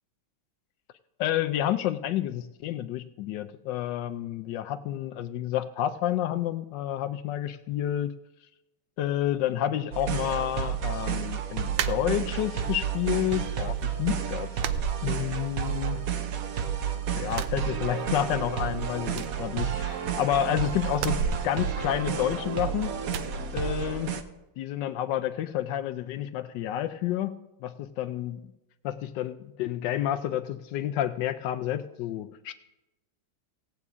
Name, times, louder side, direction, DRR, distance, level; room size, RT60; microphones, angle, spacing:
voice 1, 1.2-8.1 9.0-14.6 15.0-16.1 17.1-23.0 23.5-24.2 24.6-28.5 28.8-32.5, left 11 dB, 75° left, 10 dB, 1.0 m, -30 dB
sound 1, 9.9-24.2, right 8 dB, 65° right, 0.9 m, -31 dB
sound 2, 11.7-12.6 13.0-13.7 14.0-14.1 14.6-15.7 16.0-16.8 17.2-18.4 18.7-18.8 19.1-20.3 20.9-22.6 23.1-23.4, right 7 dB, 80° right, 1.4 m, -35 dB
18.0 x 8.3 x 3.6 m, 0.96 s
omnidirectional pair, 2.3 m